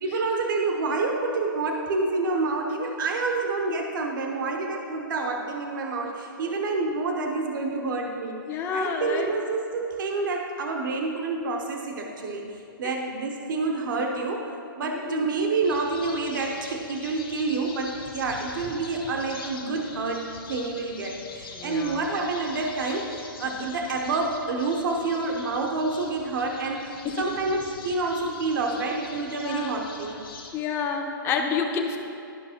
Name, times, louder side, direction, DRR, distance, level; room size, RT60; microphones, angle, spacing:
voice 1, 0.0-8.4 8.7-12.5 12.8-30.2, right 3 dB, 65° right, 1 dB, 1.0 m, -28 dB
voice 2, 8.5-9.3 14.8-15.2 21.5-22.1 23.4-23.5 27.0-27.2 29.4-29.7 30.5-32.0, left 6 dB, 20° left, 3 dB, 0.8 m, -29 dB
sound 1, 15.6-30.5, left 4 dB, 85° left, 1.6 m, -43 dB
13.0 x 5.3 x 2.9 m, 2.6 s
hypercardioid pair, 145°, 12 cm